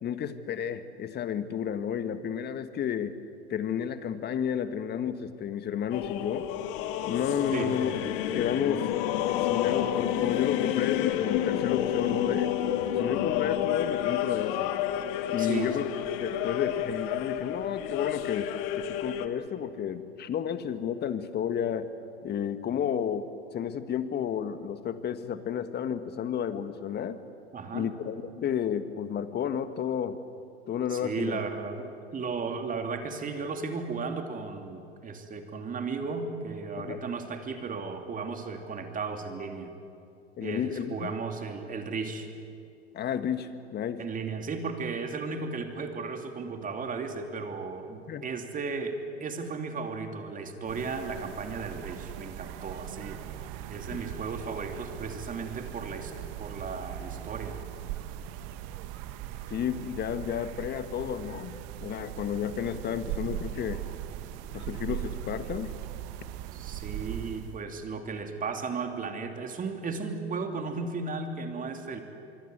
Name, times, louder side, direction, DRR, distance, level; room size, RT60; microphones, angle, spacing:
voice 1, 0.0-3.2 3.5-6.5 7.1-7.9 8.3-8.9 9.3-12.5 12.9-14.7 15.3-15.8 16.1-21.9 22.2-27.2 27.7-30.2 30.7-31.4 36.8-37.0 40.4-41.1 42.9-44.0 48.1-48.2 53.9-54.0 59.5-63.8 64.5-65.7, left 8 dB, 30° left, 11 dB, 1.7 m, -32 dB
sound 1, 5.9-19.3, left 11 dB, 55° left, 1.7 m, -29 dB
voice 2, 15.4-15.8 27.5-27.9 30.9-39.7 40.4-42.3 44.0-53.2 53.7-56.1 56.4-57.6 66.5-72.0, right 4 dB, 25° right, 5 dB, 3.0 m, -35 dB
sound 2, 50.6-67.6, right 12 dB, 50° right, 1.6 m, -39 dB
25.0 x 24.0 x 8.1 m, 2.6 s
hypercardioid pair, 95°, 32 cm